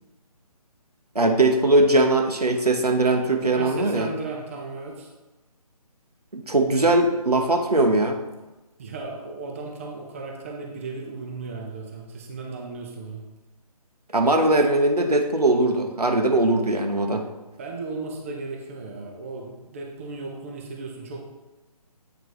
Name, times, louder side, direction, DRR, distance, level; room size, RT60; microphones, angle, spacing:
voice 1, 1.1-4.1 6.3-8.2 14.1-17.2, right 2 dB, 75° right, 4 dB, 0.9 m, -20 dB
voice 2, 3.5-5.1 8.8-13.2 17.6-21.2, right 3 dB, 20° right, 0 dB, 0.6 m, -35 dB
8.2 x 3.9 x 4.6 m, 1.1 s
figure-of-eight pair, 145°, 20 cm